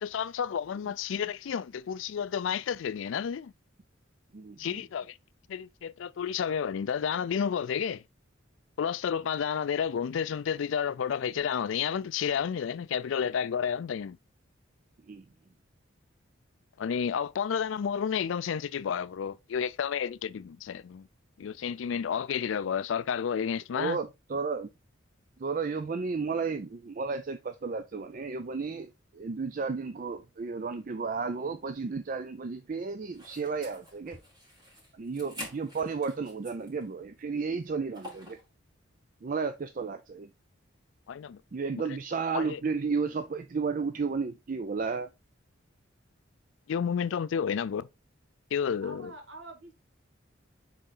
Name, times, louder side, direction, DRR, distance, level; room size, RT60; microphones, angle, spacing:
voice 1, 0.0-3.5 4.6-5.2 5.5-8.0 8.8-14.2 16.8-21.1 21.4-24.0 41.1-41.4 42.3-42.6 46.7-47.9 48.5-49.1, left 7 dB, 70° left, 0.4 m, -31 dB
voice 2, 4.3-4.8 15.1-15.2 23.7-24.7 25.4-34.2 35.0-38.4 39.2-40.3 41.5-45.1, right 4 dB, 40° right, 0.4 m, -33 dB
sound 1, 33.1-36.8 37.2-37.3 37.9-38.5, equal, 20° right, 2.3 m, -46 dB
voice 3, 48.8-49.7, right 2 dB, 65° right, 1.9 m, -46 dB
6.3 x 3.9 x 3.8 m
head